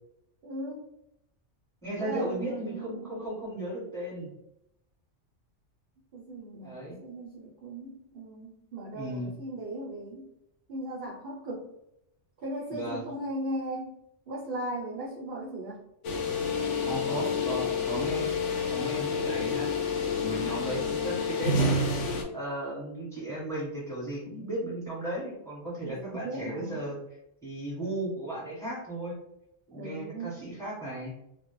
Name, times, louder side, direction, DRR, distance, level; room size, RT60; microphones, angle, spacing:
voice 1, 0.4-0.8 2.0-3.2 6.1-10.3 10.7-11.7 12.4-14.0 14.3-15.8 25.8-26.9 29.7-30.3, right 1 dB, 60° right, -3 dB, 0.6 m, -37 dB
voice 2, 1.8-4.3 6.6-7.0 8.9-9.3 12.7-13.0 16.8-18.3 18.7-19.7 20.2-27.0 27.4-29.2 29.7-31.1, right 1 dB, 5° left, -7 dB, 1.0 m, -35 dB
sound 1, 16.0-22.2, left 3 dB, 80° left, 0.9 m, -29 dB
2.3 x 2.0 x 3.0 m, 0.81 s
omnidirectional pair, 1.2 m